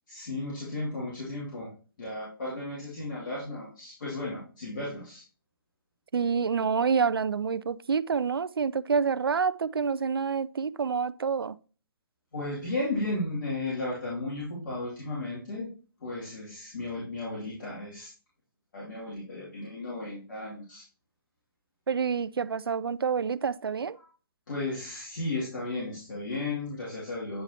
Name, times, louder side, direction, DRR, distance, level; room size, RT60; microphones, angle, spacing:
voice 1, 0.1-1.7 2.0-5.2 12.3-15.7 16.0-18.1 18.7-20.8 24.5-27.4, left 2 dB, 60° left, 2.4 m, -34 dB
voice 2, 6.1-11.6 21.9-24.0, right 6 dB, 80° right, 0.4 m, -27 dB
8.9 x 4.8 x 2.7 m
figure-of-eight pair, 135°, 12 cm